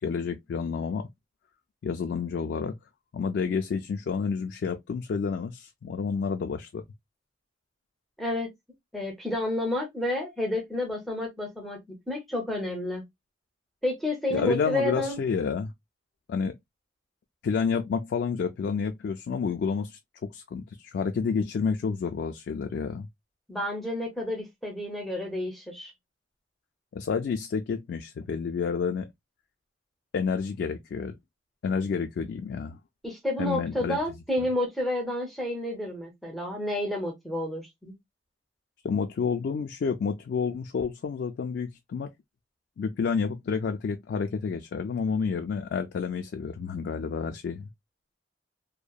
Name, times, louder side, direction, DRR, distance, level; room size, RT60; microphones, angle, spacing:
voice 1, 0.0-1.1 1.8-2.7 3.1-6.8 14.3-15.7 16.3-16.6 17.4-20.0 20.3-23.1 26.9-29.1 30.1-31.1 31.6-32.8 33.4-34.0 38.8-42.1 42.8-47.7, left 5 dB, 60° left, 0.3 m, -29 dB
voice 2, 8.2-8.5 8.9-13.0 13.8-15.2 23.5-25.9 33.0-37.9, left 1 dB, ahead, 0.5 m, -30 dB
2.8 x 2.1 x 2.2 m
head